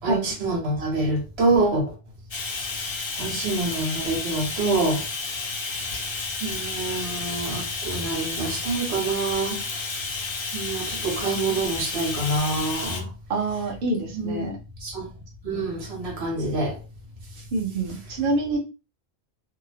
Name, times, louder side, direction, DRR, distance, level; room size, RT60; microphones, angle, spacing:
voice 1, 0.0-1.9 3.2-5.1 5.7-9.8 10.5-13.1 14.1-14.5 14.8-15.1 15.4-16.8, right 2 dB, 85° right, 1.1 m, -26 dB
Bathtub (filling or washing), 2.3-13.0, left 4 dB, 45° left, 0.4 m, -31 dB
voice 2, 13.3-14.6 17.5-18.6, right 2 dB, 55° right, 0.9 m, -26 dB
2.8 x 2.0 x 2.7 m
omnidirectional pair, 1.1 m